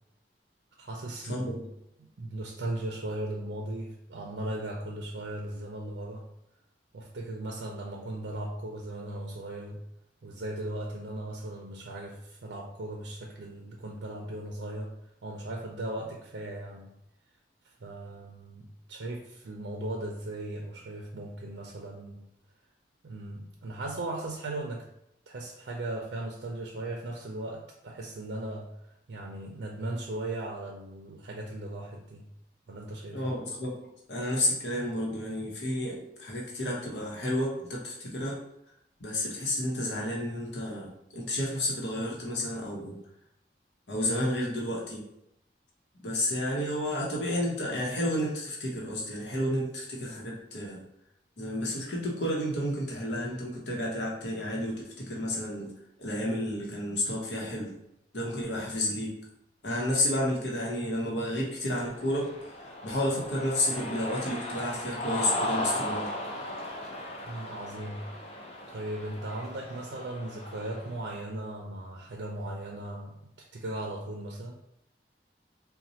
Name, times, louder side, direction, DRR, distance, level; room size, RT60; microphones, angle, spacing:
voice 1, 0.8-1.6 2.2-6.3 6.9-9.8 10.2-15.0 15.2-16.9 17.8-22.3 23.0-24.9 25.3-32.3 32.7-33.4 67.3-68.1 68.7-74.6, right 1 dB, 85° right, 0 dB, 0.5 m, -37 dB
voice 2, 1.3-1.6 33.1-33.7 34.1-38.4 39.0-43.0 43.9-45.0 46.0-50.8 51.4-55.7 56.0-57.7 58.1-59.1 59.6-62.3 62.8-66.1, left 1 dB, 90° left, -3 dB, 0.9 m, -31 dB
Cheering, 61.8-71.0, left 1 dB, 35° left, 0.5 m, -37 dB
4.1 x 2.2 x 2.7 m, 0.82 s
head